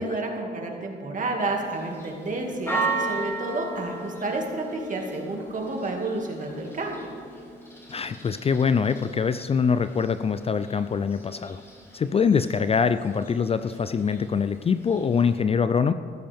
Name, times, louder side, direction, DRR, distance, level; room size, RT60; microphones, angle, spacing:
voice 1, 0.0-7.0, right 2 dB, 40° right, 1 dB, 2.2 m, -30 dB
Church bell, 1.6-15.4, right 3 dB, 10° left, 2.9 m, -37 dB
voice 2, 7.9-11.6 11.9-15.9, left 6 dB, 30° left, 11 dB, 0.4 m, -24 dB
14.5 x 12.5 x 3.5 m, 2.3 s
cardioid pair, 90°, 20 cm